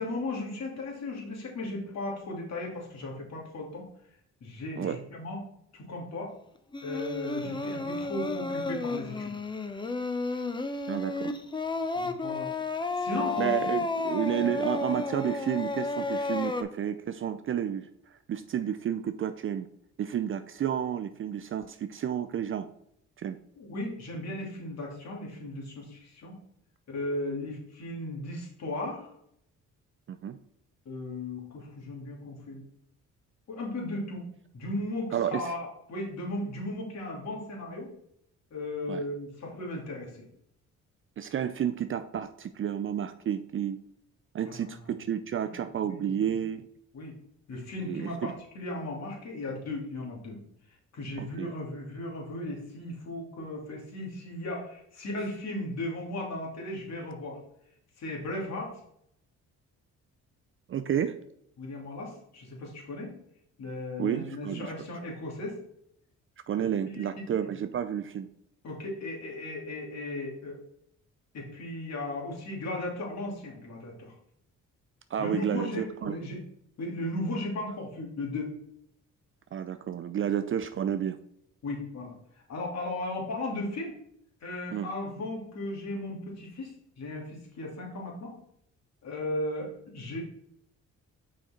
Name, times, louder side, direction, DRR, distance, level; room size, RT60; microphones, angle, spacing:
voice 1, 0.0-3.8 4.4-5.4 5.7-6.3 6.8-9.3 11.9-12.5 13.0-13.6 14.3-14.5 23.6-26.3 26.9-29.1 30.8-32.6 33.5-34.2 34.5-37.9 38.5-40.1 44.6-44.8 45.4-45.6 45.9-46.3 46.9-47.1 47.5-50.4 50.9-57.4 58.0-58.7 61.6-63.1 63.6-65.6 66.8-67.1 68.6-70.6 71.3-74.1 75.2-76.4 76.8-78.5 81.6-82.1 82.5-83.9 84.4-88.3 89.0-89.7 89.9-90.2, left 1 dB, 60° left, -1 dB, 2.6 m, -36 dB
Singing, 6.7-16.6, left 3 dB, 15° left, 0.7 m, -32 dB
voice 2, 10.9-11.3 13.4-19.7 20.0-22.7 23.2-23.4 30.1-30.4 35.1-35.5 38.9-39.0 41.2-43.8 44.3-46.7 47.8-48.3 51.2-51.5 60.7-61.2 64.0-64.7 66.5-68.3 75.1-76.1 79.5-81.2 84.7-84.9, right 9 dB, 45° right, 10 dB, 0.5 m, -31 dB
6.2 x 5.2 x 4.3 m, 0.70 s
cardioid pair, 90°, 30 cm